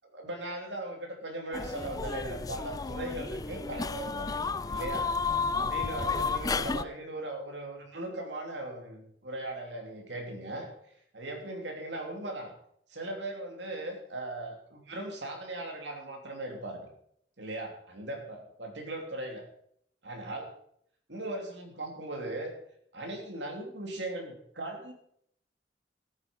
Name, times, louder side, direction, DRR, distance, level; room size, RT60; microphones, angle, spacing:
voice 1, 0.1-10.7 11.1-12.5 12.9-16.9 17.4-19.4 20.0-20.5 21.1-22.5 22.9-24.9, right 2 dB, 75° right, 2 dB, 3.0 m, -38 dB
sound 1, 1.5-6.8, left 4 dB, 20° left, 0.4 m, -32 dB
13.5 x 9.2 x 5.3 m, 0.69 s
head